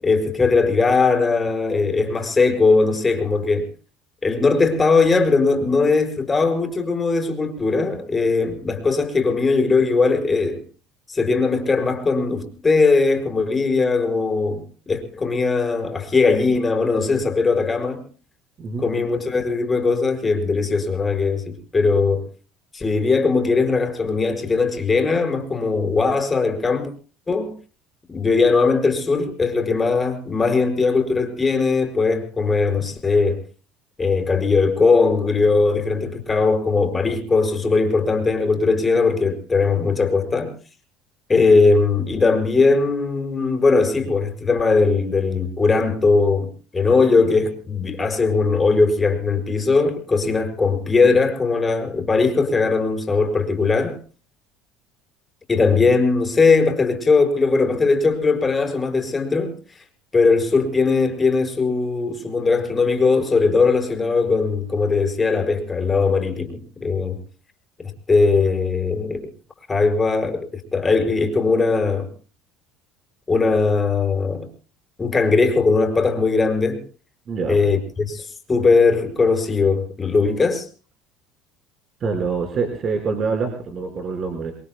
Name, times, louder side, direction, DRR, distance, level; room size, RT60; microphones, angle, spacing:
voice 1, 0.0-3.7 4.2-10.6 11.1-18.0 18.8-22.3 22.7-26.9 27.3-27.5 28.1-33.4 34.0-40.5 41.3-54.0 55.5-59.6 60.1-67.2 67.8-69.3 69.7-72.1 73.3-74.5 75.0-76.8 77.5-80.7, left 4 dB, 20° left, 5.2 m, -19 dB
voice 2, 77.3-77.6 82.0-84.5, right 4 dB, 40° right, 5.0 m, -25 dB
28.5 x 22.5 x 2.2 m
cardioid pair, 120°, 0 cm